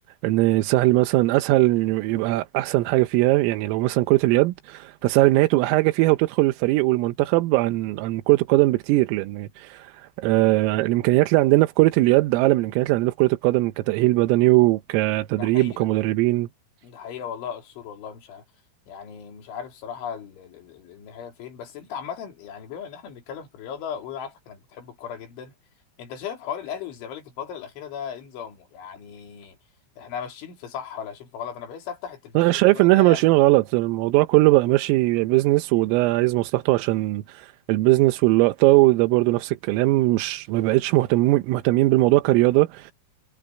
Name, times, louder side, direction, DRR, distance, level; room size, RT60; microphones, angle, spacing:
voice 1, 0.2-16.5 32.4-42.9, right 20 dB, 90° right, 3.6 m, -20 dB
voice 2, 15.4-15.9 16.8-18.4 18.9-25.6 26.0-29.6 30.0-33.2, left 8 dB, 70° left, 5.7 m, -37 dB
omnidirectional pair, 5.8 m